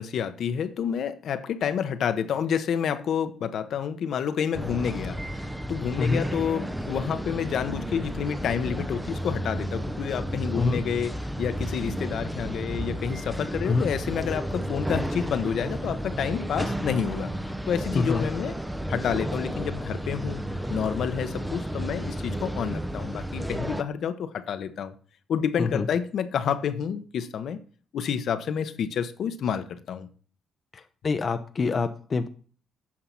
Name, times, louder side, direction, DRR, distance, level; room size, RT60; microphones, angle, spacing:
voice 1, 0.0-5.2 5.7-17.3 17.7-18.6 18.9-20.4 20.7-24.9 25.3-27.6 27.9-30.1, left 8 dB, 65° left, 0.8 m, -29 dB
sound 1, 4.5-23.8, right 1 dB, 5° right, 0.6 m, -32 dB
voice 2, 17.9-18.2 25.6-25.9 30.7-32.3, left 4 dB, 40° left, 0.6 m, -26 dB
8.7 x 5.7 x 5.6 m
cardioid pair, 90°, 0 cm